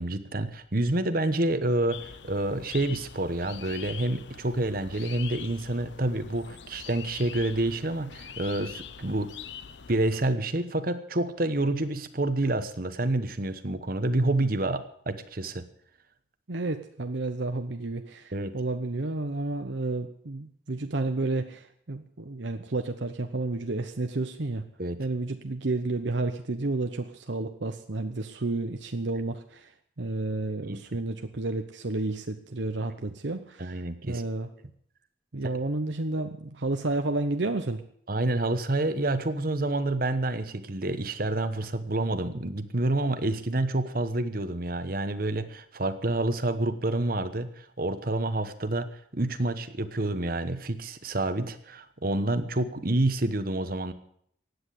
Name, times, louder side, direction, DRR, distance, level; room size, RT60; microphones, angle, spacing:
voice 1, 0.0-9.3 9.9-15.6 18.3-18.5 24.8-25.0 30.7-30.8 33.6-34.2 38.1-53.9, right 2 dB, 50° right, 10 dB, 1.1 m, -28 dB
sound 1, 1.9-10.3, left 8 dB, 70° left, 0.8 m, -44 dB
voice 2, 16.5-24.6 25.0-29.7 30.0-34.5 35.3-37.8, right 2 dB, 70° right, 6 dB, 1.0 m, -31 dB
16.0 x 9.7 x 8.4 m, 0.66 s
head